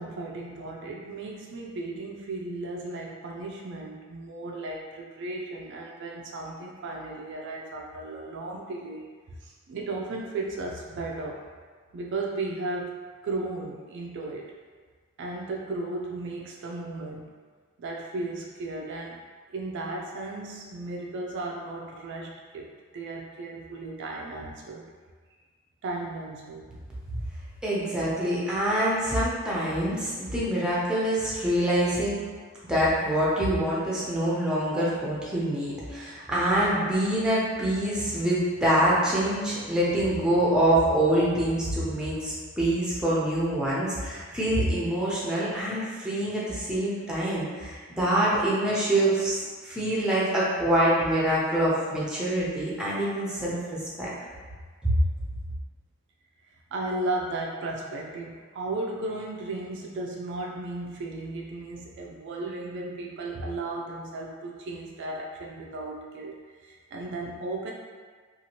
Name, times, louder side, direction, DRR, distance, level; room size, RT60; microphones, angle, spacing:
voice 1, 0.0-9.1 9.4-11.4 11.9-13.0 13.2-14.5 15.2-17.3 17.8-19.2 19.5-24.9 25.8-26.7 56.7-67.7, right 2 dB, 55° right, -1 dB, 0.3 m, -35 dB
voice 2, 27.6-32.2 32.6-54.1 54.8-55.0, right 1 dB, 5° right, -7 dB, 0.6 m, -25 dB
2.7 x 2.4 x 2.9 m, 1.5 s
head